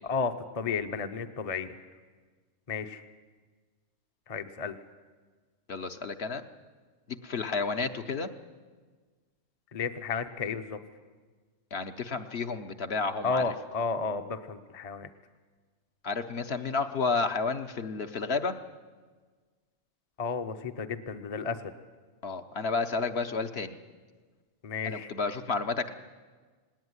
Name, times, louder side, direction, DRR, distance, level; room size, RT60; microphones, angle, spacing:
voice 1, 0.0-1.8 2.7-3.0 4.3-4.8 9.7-10.8 13.2-15.1 20.2-21.7 24.6-25.1, left 5 dB, 35° left, 8 dB, 0.8 m, -32 dB
voice 2, 5.7-6.4 7.1-8.3 11.7-13.5 16.0-18.5 22.2-23.8 24.8-25.9, left 4 dB, 55° left, 7 dB, 1.1 m, -31 dB
18.5 x 18.0 x 9.6 m, 1.4 s
omnidirectional pair, 1.4 m